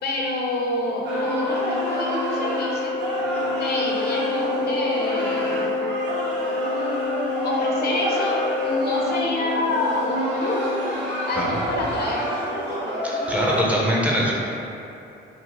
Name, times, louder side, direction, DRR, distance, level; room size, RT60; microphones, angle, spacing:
voice 1, 0.0-3.0 3.6-5.7 7.4-10.8 11.2-12.8, left 2 dB, 55° left, -2 dB, 0.5 m, -27 dB
Organ, 0.8-11.6, left 3 dB, 40° right, 1.0 m, -28 dB
sound 1, 1.0-13.6, right 1 dB, 60° right, 0.7 m, -29 dB
voice 2, 13.0-14.3, equal, 5° right, -5 dB, 0.4 m, -22 dB
2.9 x 2.1 x 2.8 m, 2.8 s
cardioid pair, 90°, 20 cm